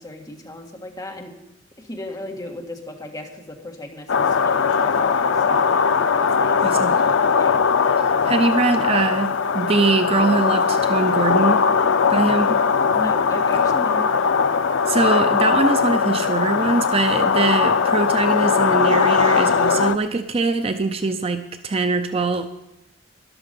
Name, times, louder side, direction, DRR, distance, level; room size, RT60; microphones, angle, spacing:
voice 1, 0.0-1.3 1.8-5.7 6.2-6.8 7.3-7.6 12.9-14.7, left 1 dB, 20° left, 1 dB, 1.6 m, -36 dB
sound 1, 4.1-20.0, left 5 dB, 80° left, 0.5 m, -19 dB
voice 2, 6.6-7.0 8.0-11.6 12.1-12.6 14.9-22.5, right 3 dB, 30° right, 8 dB, 0.5 m, -22 dB
13.0 x 11.0 x 5.3 m, 0.90 s
head